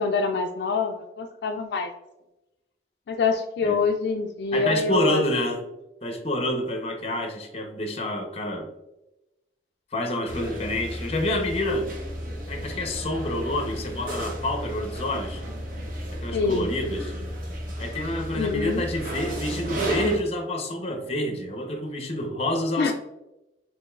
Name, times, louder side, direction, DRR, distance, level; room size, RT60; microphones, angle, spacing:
voice 1, 0.0-1.9 3.1-5.2 16.3-16.7 18.3-18.9 22.8-22.9, left 4 dB, 65° left, 4 dB, 0.3 m, -25 dB
voice 2, 4.5-5.6 6.0-8.7 9.9-11.9 12.5-15.4 16.1-17.2 17.8-22.9, left 1 dB, 35° left, 4 dB, 0.7 m, -28 dB
sound 1, 10.3-20.2, right 1 dB, 50° right, 0.8 m, -33 dB
5.0 x 3.0 x 2.3 m, 0.95 s
head